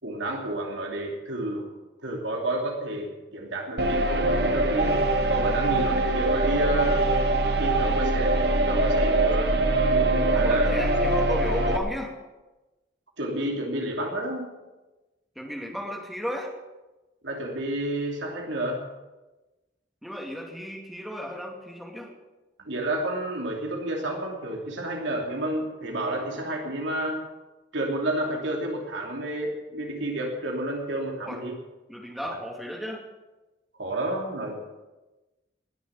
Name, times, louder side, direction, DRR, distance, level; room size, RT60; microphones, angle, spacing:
voice 1, 0.0-1.7 2.0-7.0 7.6-10.7 13.2-14.5 17.2-18.8 22.6-27.2 27.7-31.5 32.2-32.4 33.8-34.8, right 1 dB, 80° right, 0 dB, 2.8 m, -30 dB
sound 1, 3.8-11.8, right 2 dB, 60° right, 1.4 m, -23 dB
voice 2, 10.3-12.1 15.4-16.5 20.0-22.1 31.3-31.4 31.9-33.0, equal, ahead, 0 dB, 2.5 m, -34 dB
20.5 x 7.0 x 8.9 m, 1.1 s
head